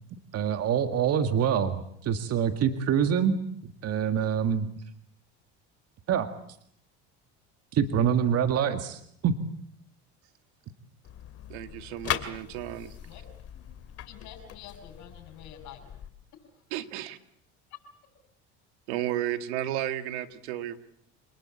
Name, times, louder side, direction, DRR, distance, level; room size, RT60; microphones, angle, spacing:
voice 1, 0.3-4.7 6.1-6.3 7.7-9.3, right 8 dB, 50° right, 8 dB, 2.0 m, -26 dB
sound 1, 11.0-16.1, left 10 dB, 45° left, 2.4 m, -39 dB
voice 2, 11.5-12.9 16.7-17.2 18.9-20.8, right 12 dB, 85° right, 10 dB, 2.0 m, -33 dB
voice 3, 14.0-15.9 16.3-16.4 17.7-18.1, left 9 dB, 60° left, -2 dB, 7.4 m, -48 dB
28.0 x 20.0 x 8.5 m, 0.68 s
supercardioid pair, 105°, 33 cm